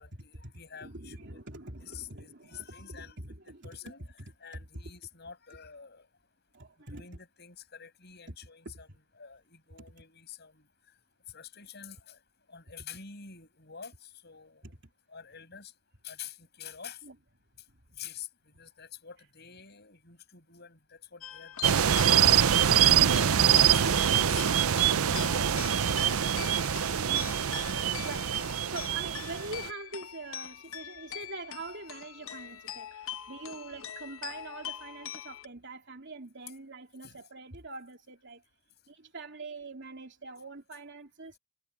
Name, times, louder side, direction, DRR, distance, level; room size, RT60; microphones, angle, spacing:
voice 1, 0.0-1.4 1.9-3.2 3.6-4.0 4.4-6.1 6.9-8.9 9.2-10.6 11.3-12.2 12.5-14.7 15.1-15.7 16.0-17.0 18.0-18.3 18.6-21.8 22.8-24.6 24.9-26.5 37.0-37.1, left 7 dB, 50° left, 7.2 m, -47 dB
voice 2, 0.8-3.7 4.2-4.6 6.5-7.1 8.3-8.4 8.6-9.0 9.8-9.9 14.6-14.8 17.0-17.2 17.7-17.8 23.8-23.9 27.0-27.4 28.0-38.4 38.9-41.4, right 3 dB, 55° right, 3.2 m, -44 dB
sound 1, 21.2-35.5, left 10 dB, 70° left, 1.1 m, -43 dB
sound 2, 21.6-29.7, right 9 dB, 80° right, 0.6 m, -24 dB
head